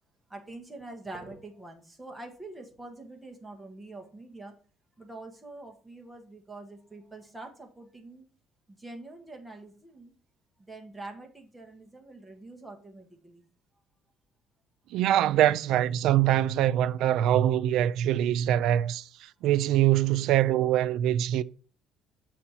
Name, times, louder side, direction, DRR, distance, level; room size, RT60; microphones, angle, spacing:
voice 1, 0.3-4.5 5.0-8.3 8.7-10.1 10.6-13.5, right 2 dB, 10° right, 1.3 m, -45 dB
voice 2, 14.9-19.1 19.4-21.4, right 12 dB, 75° right, 0.4 m, -23 dB
7.0 x 4.3 x 4.3 m
cardioid pair, 145°, 0 cm